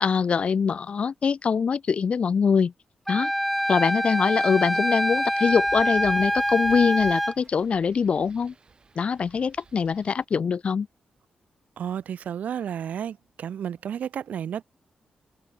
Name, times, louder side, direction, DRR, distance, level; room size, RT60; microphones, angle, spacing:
voice 1, 0.0-2.7 3.1-3.3 3.7-8.5 9.0-10.9, left 6 dB, 50° left, 0.7 m, -23 dB
Wind instrument woodwind instrument, 3.1-7.3, equal, ahead, 0.7 m, -25 dB
Wind, 3.7-10.3, right 4 dB, 35° right, 6.2 m, -52 dB
voice 2, 11.8-14.6, right 8 dB, 75° right, 1.0 m, -32 dB
wide cardioid pair, 125°, 3 cm